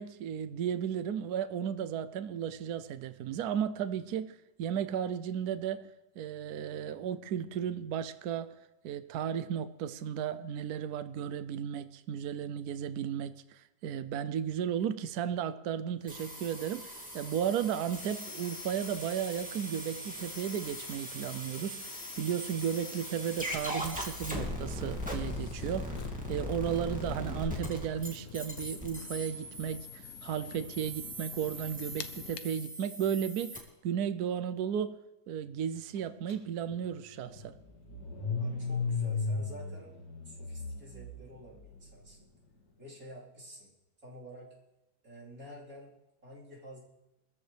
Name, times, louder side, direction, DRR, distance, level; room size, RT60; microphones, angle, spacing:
voice 1, 0.0-5.9 6.2-8.5 8.8-21.8 22.2-26.0 26.3-29.9 30.2-35.0 35.3-37.5, right 8 dB, 65° right, 12 dB, 1.1 m, -34 dB
sound 1, 16.1-33.6, left 1 dB, 5° right, 2.5 m, -40 dB
sound 2, 24.2-32.4, left 8 dB, 55° left, 1.0 m, -49 dB
Car / Engine starting, 36.3-36.4 36.7-41.9, left 4 dB, 75° left, 2.9 m, -36 dB
voice 2, 38.4-39.9 40.2-42.3 42.8-43.7 44.0-44.5 45.0-45.9 46.2-46.8, equal, 50° right, -7 dB, 4.6 m, -49 dB
23.0 x 14.5 x 3.4 m, 0.99 s
omnidirectional pair, 1.9 m